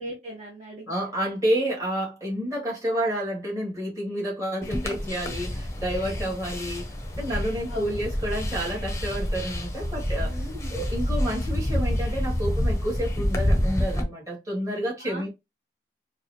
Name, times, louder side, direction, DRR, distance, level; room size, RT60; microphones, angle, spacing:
voice 1, 0.0-1.1 7.7-7.9 10.2-10.8 15.0-15.3, equal, 40° right, 1.2 m, -39 dB
voice 2, 0.9-6.9 7.2-10.4 10.7-15.3, equal, 20° right, 2.1 m, -29 dB
sound 1, 4.6-14.0, left 1 dB, 15° left, 0.8 m, -28 dB
4.6 x 2.3 x 2.8 m
head